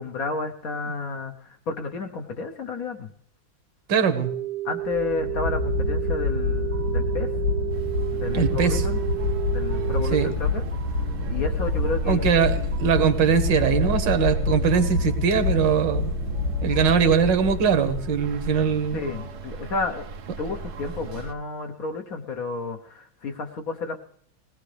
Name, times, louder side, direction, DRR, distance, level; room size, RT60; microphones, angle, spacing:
voice 1, 0.0-3.1 4.6-7.3 8.1-9.0 9.5-10.6 11.3-12.3 18.9-20.0 20.4-24.0, left 4 dB, 55° left, 5 dB, 1.1 m, -31 dB
voice 2, 3.9-4.3 8.3-8.8 10.1-10.3 12.1-16.1 16.6-19.0, right 6 dB, 70° right, 8 dB, 1.7 m, -21 dB
sound 1, 4.2-10.3, right 15 dB, 10° left, 0.6 m, -31 dB
sound 2, 4.9-19.0, left 3 dB, 85° left, 8.2 m, -27 dB
sound 3, 7.7-21.3, right 4 dB, 90° right, 1.9 m, -36 dB
21.0 x 18.0 x 3.3 m, 0.66 s
omnidirectional pair, 2.2 m